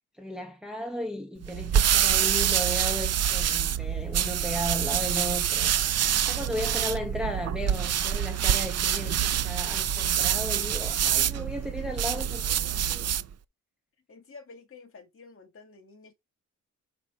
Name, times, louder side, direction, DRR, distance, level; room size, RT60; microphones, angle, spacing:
voice 1, 0.2-5.7 6.2-13.1, equal, ahead, 1.2 m, -35 dB
sound 1, 1.4-13.3, right 9 dB, 50° right, 0.5 m, -26 dB
voice 2, 6.5-7.0 14.1-16.1, left 4 dB, 40° left, 2.0 m, -49 dB
5.9 x 5.0 x 5.0 m
wide cardioid pair, 130°, 34 cm